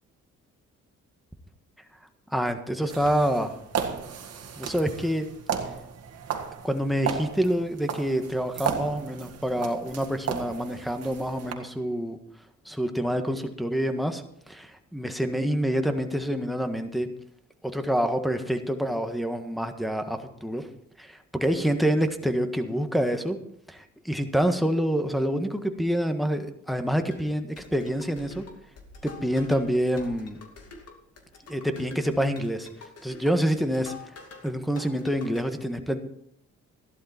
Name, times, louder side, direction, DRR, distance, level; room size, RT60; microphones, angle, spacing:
voice 1, 2.3-3.5 4.6-5.3 6.6-12.2 12.6-17.1 17.7-20.7 21.0-23.4 23.7-28.4 29.0-30.4 31.5-32.7 33.0-34.1 34.4-36.0, equal, ahead, 7 dB, 1.5 m, -27 dB
sound 1, 2.8-11.5, right 7 dB, 55° right, 1.9 m, -34 dB
sound 2, 27.1-34.5 34.8-35.4, left 4 dB, 55° left, 2.5 m, -46 dB
14.5 x 11.5 x 4.4 m, 0.73 s
cardioid pair, 90°, 30 cm